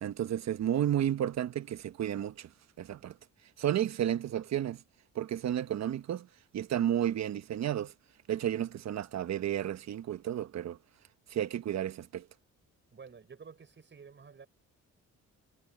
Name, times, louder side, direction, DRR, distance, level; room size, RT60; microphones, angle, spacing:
voice 1, 0.0-2.5 2.8-3.1 3.6-4.8 5.1-6.3 6.5-7.9 8.3-10.8 11.3-12.2, right 11 dB, 60° right, 1.2 m, -32 dB
voice 2, 4.0-4.5 12.9-14.5, right 6 dB, 40° right, 6.7 m, -52 dB
cardioid pair, 90°, 30 cm